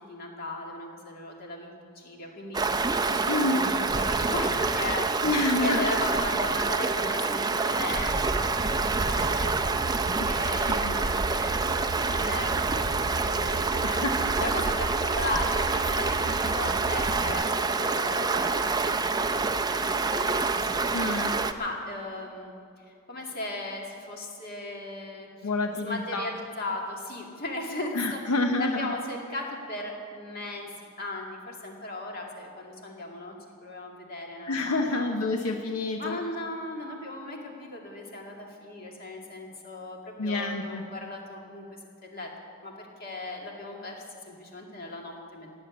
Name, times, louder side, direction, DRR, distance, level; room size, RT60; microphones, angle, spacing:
voice 1, 0.1-5.2 5.5-9.5 10.3-12.6 13.0-19.0 19.4-20.8 21.5-22.5 22.9-28.2 28.6-30.7 31.0-33.3 33.6-35.1 36.0-42.3 42.6-45.5, left 2 dB, 40° left, 0 dB, 2.2 m, -37 dB
Stream, 2.5-21.5, right 4 dB, 20° right, 0.5 m, -27 dB
voice 2, 3.3-3.6 5.2-5.9 10.2-10.3 10.8-10.9 13.8-14.3 20.9-21.3 25.4-26.3 27.9-28.9 34.5-36.2 40.2-40.8, left 2 dB, 80° left, 4 dB, 0.9 m, -28 dB
Train / Engine, 8.6-17.3, right 2 dB, 60° right, 0.9 m, -36 dB
17.0 x 7.8 x 9.4 m, 2.4 s
head